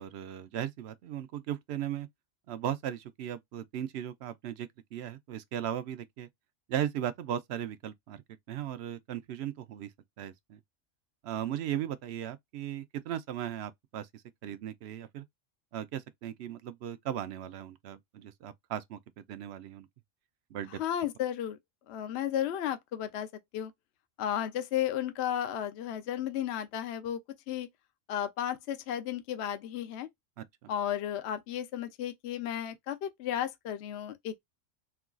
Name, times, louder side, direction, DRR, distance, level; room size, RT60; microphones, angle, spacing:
voice 1, 0.0-2.1 2.5-6.3 6.7-9.9 10.2-10.6 11.2-15.2 15.7-19.9 20.5-20.8 30.4-30.7, right 10 dB, 65° right, 0.8 m, -37 dB
voice 2, 20.8-21.6 21.9-23.3 23.5-23.7 24.2-27.2 27.5-27.7 28.1-30.1 30.7-34.4, left 10 dB, 70° left, 0.8 m, -33 dB
4.4 x 2.3 x 2.4 m
omnidirectional pair, 1.3 m